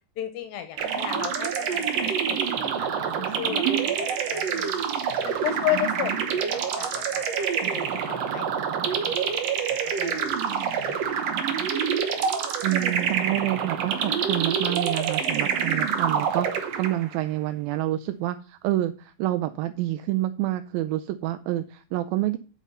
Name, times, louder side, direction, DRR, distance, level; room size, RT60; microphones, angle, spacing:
voice 1, 0.2-3.7 4.3-4.8 5.2-6.3 6.5-7.5 7.7-9.4 10.0-11.0, left 13 dB, 80° left, 10 dB, 2.5 m, -34 dB
sound 1, 0.8-17.2, right 7 dB, 60° right, 1.8 m, -27 dB
voice 2, 12.6-22.4, right 15 dB, 85° right, 9 dB, 2.4 m, -28 dB
8.4 x 5.5 x 5.4 m, 0.36 s
omnidirectional pair, 4.1 m